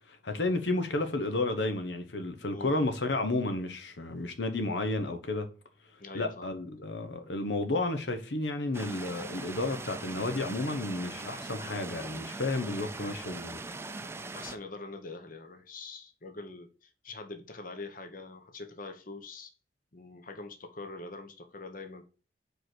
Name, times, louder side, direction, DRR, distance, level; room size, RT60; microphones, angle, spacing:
voice 1, 0.1-5.5 6.1-13.6, left 2 dB, 90° left, 1.0 m, -32 dB
voice 2, 6.0-6.5 14.3-19.5 19.9-22.0, left 3 dB, 50° left, 1.0 m, -44 dB
sound 1, 8.7-14.6, right 3 dB, 15° right, 0.5 m, -41 dB
5.1 x 4.8 x 6.1 m
head